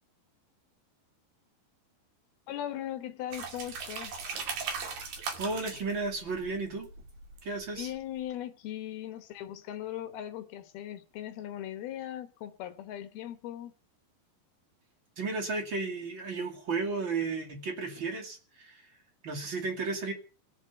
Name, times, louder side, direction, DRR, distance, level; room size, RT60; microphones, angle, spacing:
voice 1, 2.5-4.2 7.7-13.7, left 11 dB, 70° left, 2.7 m, -39 dB
sound 1, 3.3-8.0, right 5 dB, 55° right, 3.6 m, -39 dB
voice 2, 5.4-6.9 7.4-7.9 15.2-18.8 19.2-20.1, right 4 dB, 35° right, 2.4 m, -33 dB
20.5 x 7.3 x 8.2 m
omnidirectional pair, 5.2 m